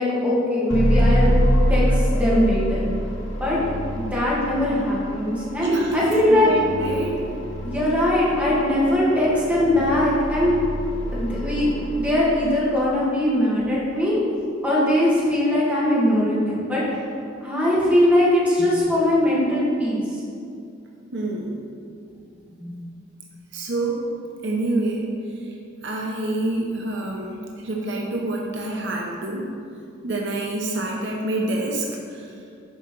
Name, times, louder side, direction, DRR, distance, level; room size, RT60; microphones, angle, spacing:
voice 1, 0.0-1.3 1.7-2.8 3.4-3.6 3.9-6.5 7.6-10.6 11.1-14.1 14.6-17.0 17.4-20.0 22.6-22.8, left 1 dB, 10° right, -7 dB, 1.9 m, -21 dB
sound 1, 0.7-12.9, equal, 75° left, 1.1 m, -25 dB
voice 2, 5.6-7.2 21.1-21.6 23.5-24.0 24.4-25.1 25.8-29.5 30.0-32.4, right 1 dB, 65° right, -1 dB, 0.9 m, -27 dB
7.0 x 4.9 x 6.0 m, 2.5 s
head